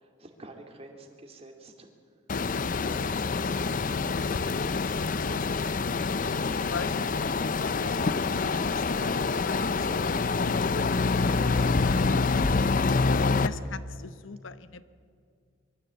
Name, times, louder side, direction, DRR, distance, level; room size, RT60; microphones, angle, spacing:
voice 1, 0.2-1.9, right 2 dB, 30° right, 3 dB, 2.5 m, -49 dB
sound 1, 2.3-13.5, left 4 dB, 40° left, 0.5 m, -26 dB
voice 2, 6.3-8.4 8.7-12.0 13.4-14.8, left 4 dB, 70° left, 14 dB, 0.9 m, -43 dB
22.5 x 14.5 x 8.3 m, 2.3 s
head